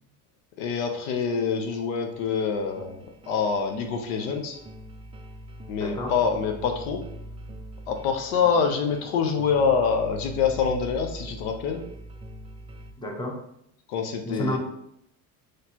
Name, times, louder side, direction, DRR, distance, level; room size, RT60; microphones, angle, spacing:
voice 1, 0.6-4.6 5.7-7.0 7.9-11.8 13.9-14.6, left 6 dB, 80° left, 5 dB, 0.7 m, -26 dB
sound 1, 2.1-12.9, right 1 dB, 15° right, 0.3 m, -42 dB
voice 2, 5.8-6.1 13.0-13.4 14.3-14.6, left 1 dB, 10° left, 1 dB, 0.8 m, -30 dB
4.1 x 3.2 x 2.8 m, 0.76 s
supercardioid pair, 95°, 39 cm